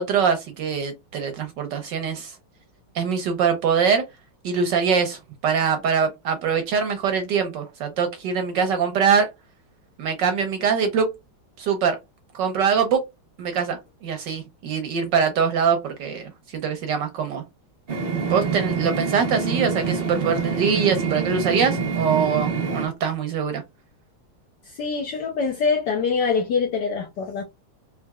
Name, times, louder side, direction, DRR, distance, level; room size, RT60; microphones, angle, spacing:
voice 1, 0.0-2.3 2.9-4.0 4.4-9.3 10.0-11.1 11.6-12.0 12.3-13.0 13.4-17.4 18.3-23.6, right 6 dB, 70° right, 1.1 m, -23 dB
sound 1, 17.9-22.9, right 5 dB, 50° right, 0.7 m, -26 dB
voice 2, 24.8-27.4, left 5 dB, 70° left, 1.0 m, -24 dB
3.7 x 3.5 x 2.3 m
omnidirectional pair, 2.4 m